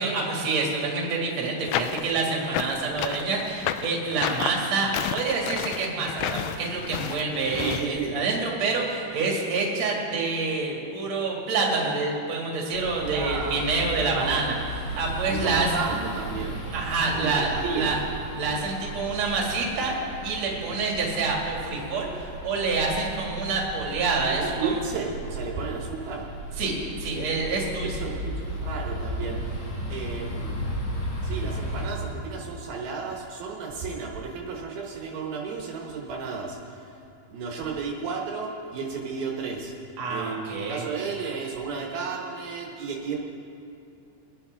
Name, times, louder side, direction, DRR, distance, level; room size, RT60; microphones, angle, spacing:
voice 1, 0.0-14.6 15.0-15.7 16.7-18.0 18.4-20.0 20.2-24.8 26.6-28.1 40.0-40.8, right 3 dB, 50° right, -2 dB, 3.0 m, -27 dB
sound 1, 1.7-7.9, left 11 dB, 80° left, 2.3 m, -31 dB
voice 2, 7.5-8.1 13.0-13.6 14.1-14.4 15.3-16.6 17.1-18.0 24.4-26.3 28.0-29.4 29.9-30.6 31.2-36.6 37.3-39.7 40.1-43.2, right 5 dB, 75° right, -1 dB, 3.0 m, -33 dB
sound 2, 12.7-31.9, right 1 dB, 45° left, 2.8 m, -35 dB
23.5 x 10.5 x 3.5 m, 2.7 s
omnidirectional pair, 4.4 m